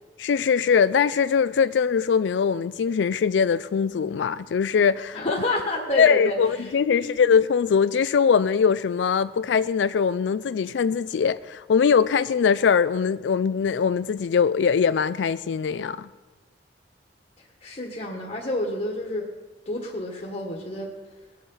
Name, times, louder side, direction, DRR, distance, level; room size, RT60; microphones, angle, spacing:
voice 1, 0.2-5.2 6.0-16.1, left 6 dB, 80° left, 0.4 m, -22 dB
voice 2, 5.1-7.1 17.4-19.3 19.6-20.9, left 1 dB, 40° left, 1.6 m, -29 dB
20.5 x 8.4 x 5.6 m
head